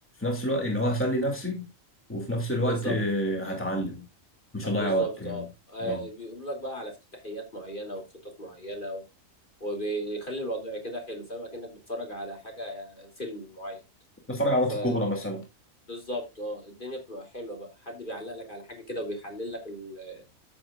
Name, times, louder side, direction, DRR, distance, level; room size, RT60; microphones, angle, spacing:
voice 1, 0.2-1.7 2.1-4.0 4.5-5.4 5.8-6.0 14.3-15.4, equal, 10° left, 2.5 m, -28 dB
voice 2, 2.5-3.0 4.6-9.0 9.6-13.8 14.7-15.0 15.9-20.2, equal, 40° left, 3.2 m, -36 dB
14.5 x 7.1 x 2.4 m
omnidirectional pair, 1.4 m